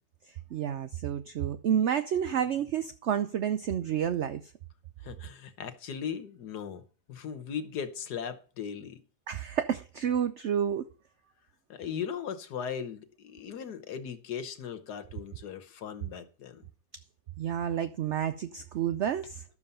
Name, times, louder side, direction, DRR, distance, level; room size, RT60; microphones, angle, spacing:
voice 1, 0.3-4.5 9.3-10.8 17.4-19.4, right 9 dB, 60° right, 0.8 m, -30 dB
voice 2, 5.0-6.8 7.1-9.0 11.7-16.6, left 7 dB, 85° left, 1.7 m, -38 dB
12.0 x 7.3 x 5.5 m
omnidirectional pair, 1.7 m